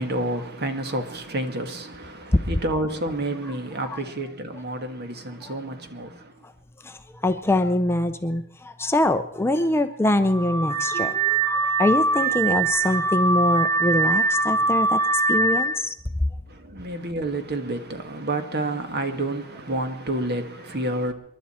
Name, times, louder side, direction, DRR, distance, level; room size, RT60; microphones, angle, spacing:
voice 1, 0.0-6.4 16.5-21.1, right 1 dB, 50° right, 1.6 m, -29 dB
voice 2, 6.8-15.0 15.3-15.9, left 1 dB, 10° left, 0.6 m, -24 dB
Car / Alarm, 10.3-15.7, right 3 dB, 90° right, 2.2 m, -22 dB
28.5 x 11.5 x 4.3 m
head